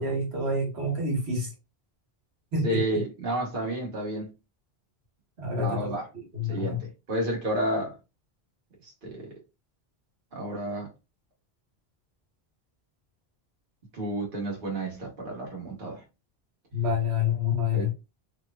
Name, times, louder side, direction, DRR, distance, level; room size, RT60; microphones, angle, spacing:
voice 1, 0.0-1.5 2.5-3.0 5.4-6.8 16.7-17.9, left 3 dB, 85° right, 1.5 m, -28 dB
voice 2, 2.6-4.3 5.5-6.0 6.5-7.9 8.8-9.3 10.3-10.9 13.9-16.0 17.7-17.9, right 1 dB, 60° right, 1.3 m, -31 dB
3.3 x 2.8 x 2.2 m
omnidirectional pair, 1.1 m